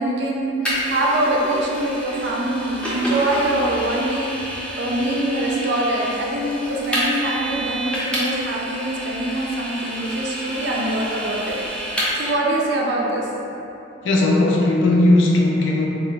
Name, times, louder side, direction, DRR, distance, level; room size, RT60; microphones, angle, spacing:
voice 1, 0.0-4.4 4.8-11.6 12.1-13.3, right 1 dB, 65° right, -2 dB, 0.4 m, -23 dB
Vehicle, 0.7-12.3, equal, 5° left, 0.4 m, -29 dB
voice 2, 14.0-15.9, left 2 dB, 85° left, -1 dB, 0.4 m, -17 dB
2.3 x 2.1 x 3.8 m, 3.0 s
head